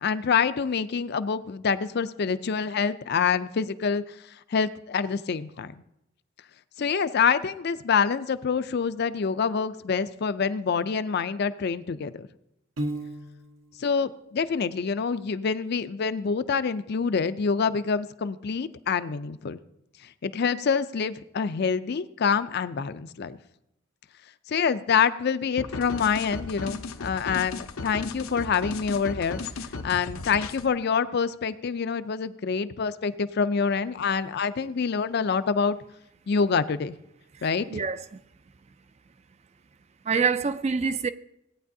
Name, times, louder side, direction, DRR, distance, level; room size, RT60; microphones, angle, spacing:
voice 1, 0.0-4.1 4.5-5.7 6.8-12.3 13.8-19.6 20.2-23.4 24.5-29.4 29.8-35.8 36.3-36.9 37.4-37.8, left 6 dB, 50° left, 0.4 m, -26 dB
Piano, 12.8-13.8, right 1 dB, 80° right, 1.2 m, -33 dB
sound 1, 25.6-30.7, left 3 dB, 90° left, 0.7 m, -36 dB
voice 2, 37.4-38.0 40.1-41.1, right 5 dB, 30° right, 0.3 m, -26 dB
17.0 x 9.3 x 2.7 m
head